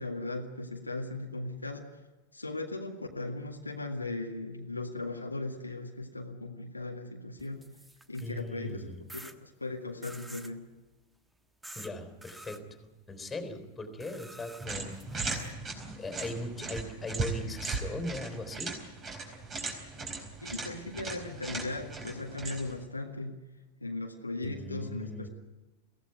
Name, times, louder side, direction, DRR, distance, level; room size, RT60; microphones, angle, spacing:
voice 1, 0.0-2.0 2.3-7.7 8.1-8.8 9.1-10.7 20.4-23.5 23.8-25.3, left 2 dB, 85° left, 2 dB, 1.8 m, -38 dB
sound 1, 7.4-8.5 9.1-9.3 10.0-10.5 11.6-11.9 12.2-12.6 14.0-15.5, right 1 dB, 5° right, 1.3 m, -48 dB
voice 2, 8.2-9.0 11.8-12.8 13.1-15.0 16.0-18.8 24.4-25.3, left 1 dB, 10° left, 7 dB, 3.9 m, -39 dB
sound 2, 14.6-22.8, right 3 dB, 25° right, 4.4 m, -38 dB
22.5 x 16.5 x 9.3 m, 1.2 s
figure-of-eight pair, 90°, 0 cm